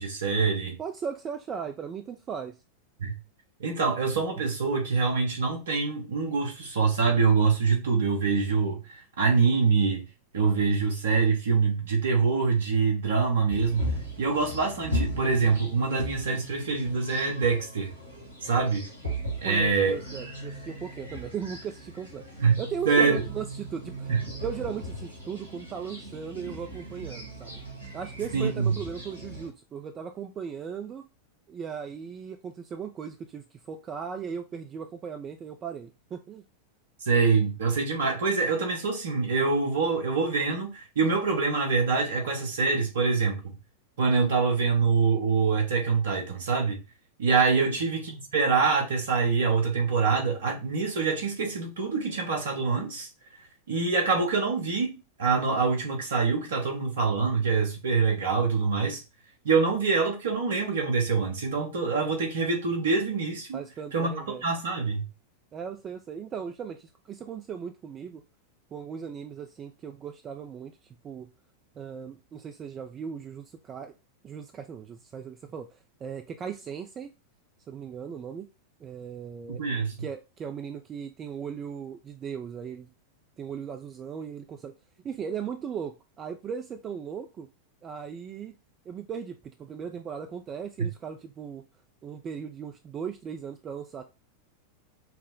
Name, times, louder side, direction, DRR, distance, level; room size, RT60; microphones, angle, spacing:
voice 1, 0.0-0.8 3.0-3.1 3.6-8.8 9.2-10.0 10.3-13.9 14.2-17.9 18.4-18.8 19.4-20.0 22.4-22.6 22.9-23.2 24.1-24.2 28.3-28.7 37.1-43.5 44.0-46.8 47.2-53.1 53.7-59.0 59.4-63.6 63.9-65.0 79.5-80.0 90.8-90.9, right 4 dB, 65° right, 1.2 m, -25 dB
voice 2, 0.8-2.6 19.4-27.5 27.9-31.0 31.5-36.4 47.5-47.8 63.5-64.4 65.5-68.2 68.7-70.7 71.0-71.3 71.8-73.9 74.2-77.1 77.7-78.5 78.8-79.6 80.0-82.9 83.4-84.7 85.0-87.5 87.8-88.5 88.9-91.6 92.0-94.0, right 7 dB, 25° right, 0.4 m, -37 dB
sound 1, 13.5-29.5, equal, 85° right, 1.7 m, -37 dB
5.7 x 2.1 x 3.7 m
figure-of-eight pair, 90°, 0 cm